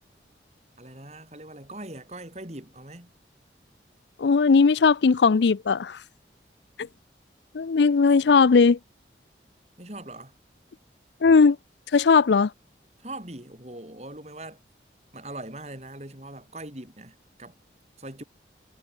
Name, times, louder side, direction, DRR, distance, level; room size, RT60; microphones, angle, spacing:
voice 1, 0.8-3.1 9.8-10.3 13.0-14.6 15.1-17.5 18.0-18.2, right 1 dB, 35° right, 4.9 m, -41 dB
voice 2, 4.2-6.0 7.5-8.8 11.2-11.6 11.9-12.5, left 5 dB, 80° left, 0.5 m, -18 dB
head